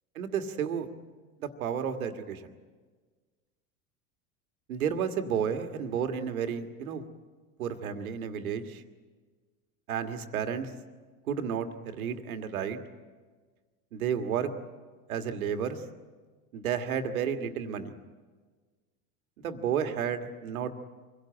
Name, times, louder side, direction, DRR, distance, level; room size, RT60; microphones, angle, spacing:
voice 1, 0.2-0.9 1.4-2.5 4.7-7.1 7.6-8.8 9.9-10.7 11.3-12.8 13.9-14.5 15.1-15.8 16.5-17.9 19.4-20.7, right 7 dB, 80° right, 7 dB, 1.7 m, -32 dB
24.5 x 17.0 x 8.9 m, 1.5 s
hypercardioid pair, 95°, 42 cm